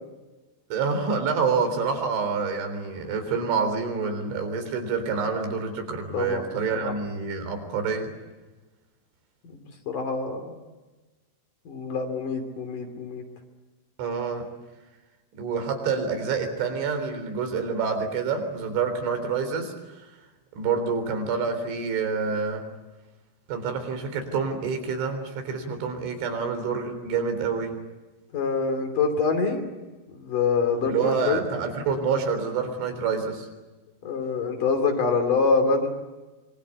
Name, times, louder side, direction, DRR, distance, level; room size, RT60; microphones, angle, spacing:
voice 1, 0.7-8.1 14.0-14.5 15.3-19.7 20.6-22.7 23.5-27.7 30.9-33.5, right 5 dB, 80° right, 7 dB, 6.1 m, -27 dB
voice 2, 6.1-6.5 6.7-6.9 9.4-10.6 11.7-13.2 28.3-29.6 30.1-31.4 34.0-35.9, left 4 dB, 50° left, 7 dB, 4.1 m, -25 dB
26.0 x 24.5 x 8.3 m, 1.2 s
omnidirectional pair, 5.3 m